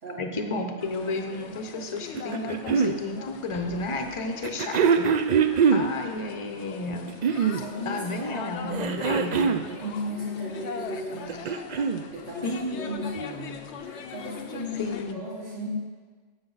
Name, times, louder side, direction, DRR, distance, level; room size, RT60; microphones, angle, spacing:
voice 1, 0.2-5.2 5.7-7.1 7.9-9.6 12.4-12.9 14.8-15.2, left 2 dB, 30° left, 4 dB, 0.8 m, -32 dB
sound 1, 0.8-15.1, left 6 dB, 75° left, 0.9 m, -41 dB
sound 2, 2.2-3.0 4.4-5.9 6.9-7.7 8.7-9.7 11.1-12.0 13.2-13.3, right 6 dB, 60° right, 0.4 m, -23 dB
voice 2, 7.5-11.5 12.1-15.7, left 1 dB, 80° right, -6 dB, 2.1 m, -36 dB
15.5 x 5.7 x 4.0 m, 1.5 s
omnidirectional pair, 1.2 m